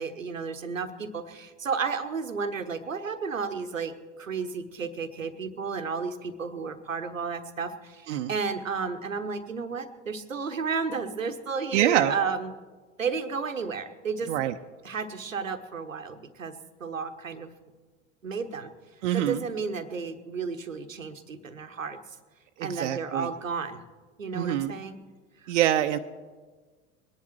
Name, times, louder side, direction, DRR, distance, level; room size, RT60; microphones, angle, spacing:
voice 1, 0.0-12.6 13.0-14.3 14.8-17.5 18.2-18.7 19.1-22.0 22.6-23.8 24.2-25.0 25.4-25.5, right 5 dB, 90° right, 9 dB, 0.9 m, -32 dB
voice 2, 11.7-12.1 14.3-14.5 19.0-19.4 22.6-23.3 24.3-24.7 25.5-26.0, right 12 dB, 65° right, 8 dB, 0.7 m, -25 dB
21.5 x 10.5 x 4.5 m, 1.4 s
figure-of-eight pair, 80°, 38 cm